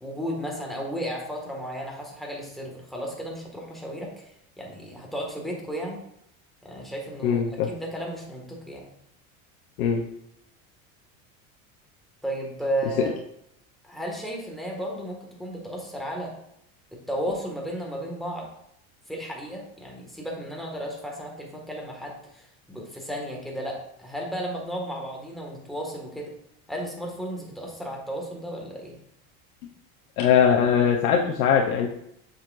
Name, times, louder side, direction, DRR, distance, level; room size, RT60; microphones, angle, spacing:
voice 1, 0.0-4.3 4.6-6.0 6.6-7.4 7.7-8.9 12.2-13.1 13.8-16.3 16.9-18.5 19.1-26.3 26.7-29.0, equal, ahead, -1 dB, 1.8 m, -34 dB
voice 2, 7.2-7.7 9.8-10.0 30.2-31.9, left 7 dB, 90° left, 1 dB, 0.9 m, -21 dB
7.3 x 6.4 x 2.6 m, 0.76 s
supercardioid pair, 105°, 41 cm